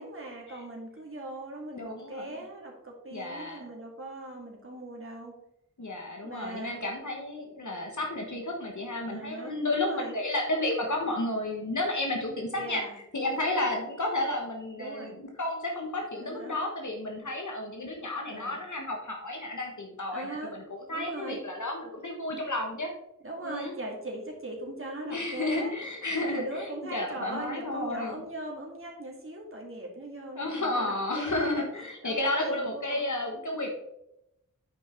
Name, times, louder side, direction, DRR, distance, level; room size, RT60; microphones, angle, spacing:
voice 1, 0.0-5.3 6.2-6.7 9.1-10.2 12.6-12.9 14.8-15.1 16.2-16.6 18.3-18.6 20.1-20.5 20.9-21.4 23.2-25.7 26.1-31.6 32.0-33.1, right 2 dB, 45° right, -1 dB, 2.2 m, -39 dB
voice 2, 1.7-2.3 3.1-3.6 5.8-12.8 13.1-22.9 23.4-23.7 25.0-28.2 30.3-33.7, left 2 dB, 70° left, 1 dB, 1.4 m, -32 dB
8.9 x 5.5 x 4.4 m, 0.82 s
wide cardioid pair, 50°, 31 cm